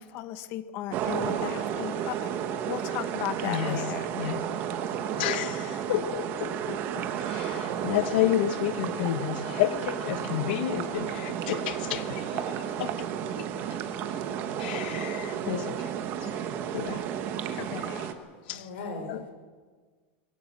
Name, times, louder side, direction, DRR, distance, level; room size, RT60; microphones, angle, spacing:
voice 1, 0.0-2.2 2.7-4.0 17.6-18.1, left 13 dB, 35° left, 1.0 m, -36 dB
sound 1, 0.9-18.1, right 9 dB, 35° right, 1.3 m, -32 dB
voice 2, 3.4-4.5 5.2-13.0 13.4-13.5 14.6-15.9 16.2-16.5 16.7-17.0 18.5-18.7 19.1-19.2, left 13 dB, 55° left, 1.1 m, -31 dB
voice 3, 17.5-18.0 18.5-19.3, left 3 dB, 75° left, 5.8 m, -40 dB
22.5 x 17.0 x 7.5 m
supercardioid pair, 175°, 6 cm